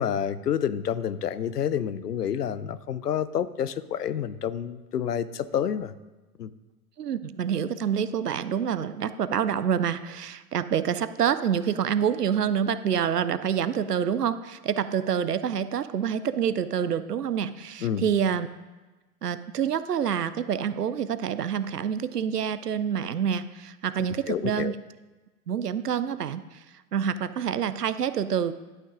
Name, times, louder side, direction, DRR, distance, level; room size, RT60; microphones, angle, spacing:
voice 1, 0.0-5.9 6.4-6.5 17.8-18.0 24.3-24.8, left 9 dB, 80° left, 15 dB, 0.6 m, -28 dB
voice 2, 7.0-18.5 19.2-24.7 25.5-26.4 26.9-28.5, right 8 dB, 85° right, 13 dB, 0.6 m, -27 dB
11.5 x 6.1 x 3.7 m, 1.2 s
figure-of-eight pair, 90°, 47 cm